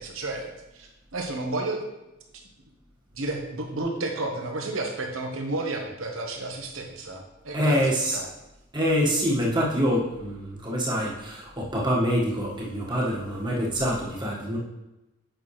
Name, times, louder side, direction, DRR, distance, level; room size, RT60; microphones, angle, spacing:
voice 1, 0.0-1.8 3.1-7.8 8.1-8.3, right 2 dB, 75° right, 2 dB, 1.4 m, -32 dB
voice 2, 7.5-8.2 8.7-14.6, equal, 20° right, -3 dB, 1.6 m, -25 dB
8.4 x 6.1 x 3.3 m, 0.97 s
head